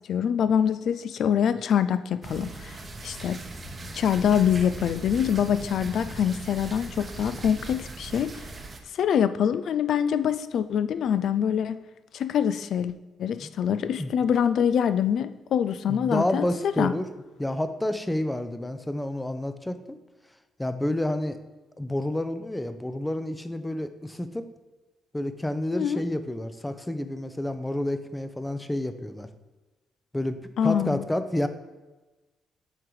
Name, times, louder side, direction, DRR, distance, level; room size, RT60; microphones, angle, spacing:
voice 1, 0.1-2.7 3.0-3.4 3.9-8.3 9.0-11.8 12.1-12.9 13.2-16.9 25.7-26.0 30.6-31.0, left 8 dB, 65° left, 13 dB, 0.4 m, -25 dB
sound 1, 2.2-8.8, right 2 dB, 30° right, 0.9 m, -39 dB
voice 2, 15.9-17.1 17.4-20.0 20.6-21.4 21.8-24.5 25.1-29.3 30.1-31.5, left 1 dB, 10° left, 10 dB, 0.6 m, -29 dB
7.8 x 3.8 x 4.8 m, 1.1 s
cardioid pair, 90°, 0 cm